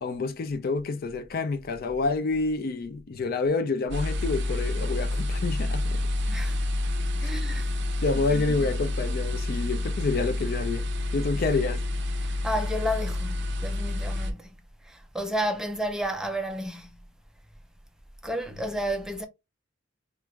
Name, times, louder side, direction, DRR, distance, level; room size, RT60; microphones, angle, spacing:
voice 1, 0.0-6.0 7.2-7.3 8.0-10.9 11.1-11.8, left 3 dB, 50° left, 0.4 m, -28 dB
sound 1, 3.9-14.3, left 2 dB, 60° right, 0.6 m, -29 dB
voice 2, 6.3-6.6 7.2-7.7 8.3-8.7 12.2-14.5 14.9-16.9 18.2-19.3, equal, 5° right, 0.5 m, -32 dB
4.4 x 2.4 x 2.2 m
head